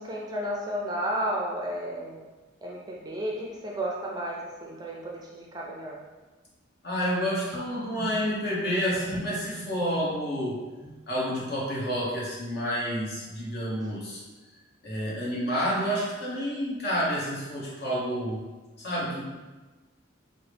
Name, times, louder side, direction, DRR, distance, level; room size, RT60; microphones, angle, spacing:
voice 1, 0.0-2.3 2.6-6.0 7.5-8.2 9.0-9.1 9.5-9.7 10.0-10.2 10.8-10.9 13.8-13.9, right 1 dB, 20° right, -2 dB, 0.4 m, -33 dB
voice 2, 6.8-10.6 11.1-14.2 14.8-18.4 18.8-19.2, equal, 55° left, -6 dB, 1.0 m, -29 dB
3.6 x 2.1 x 3.3 m, 1.2 s
head